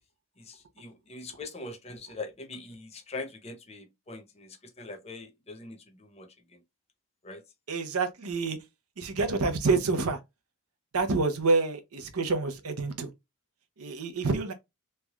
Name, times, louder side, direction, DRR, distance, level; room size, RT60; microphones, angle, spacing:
voice 1, 0.4-6.6 7.2-7.4, left 3 dB, 30° left, 0.7 m, -42 dB
voice 2, 7.7-8.6 9.0-10.2 10.9-13.1 13.8-14.5, right 3 dB, 90° right, 0.8 m, -27 dB
3.3 x 3.3 x 2.3 m
head